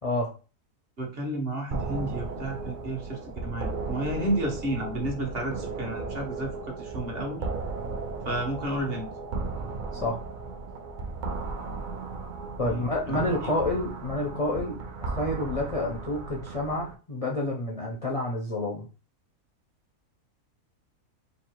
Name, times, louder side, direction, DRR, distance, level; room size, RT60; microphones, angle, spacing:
voice 1, 1.0-7.5 8.2-9.1 12.6-13.5, right 1 dB, 45° right, 2 dB, 1.0 m, -32 dB
sound 1, 1.7-16.9, right 3 dB, 70° right, 0.4 m, -35 dB
voice 2, 12.6-18.9, left 1 dB, 60° left, -1 dB, 0.3 m, -29 dB
3.2 x 2.5 x 4.4 m, 0.34 s
omnidirectional pair, 1.6 m